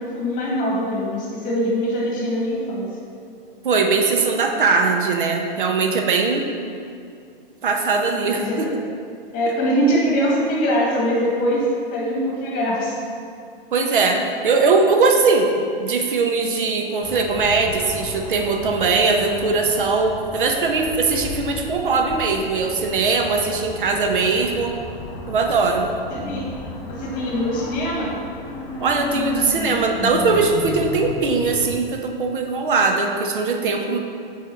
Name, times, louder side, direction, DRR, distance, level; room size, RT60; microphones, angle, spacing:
voice 1, 0.0-2.9 8.2-8.7 9.3-11.6 11.9-13.0 26.1-26.5 26.9-28.1, equal, 25° left, -3 dB, 1.6 m, -23 dB
voice 2, 3.6-6.5 7.6-8.7 13.7-15.5 15.8-24.8 25.3-25.9 28.8-34.0, right 4 dB, 60° right, 3 dB, 0.7 m, -20 dB
sound 1, 17.0-31.8, left 2 dB, 10° left, 0.3 m, -34 dB
7.9 x 3.6 x 4.3 m, 2.4 s
figure-of-eight pair, 110°, 30 cm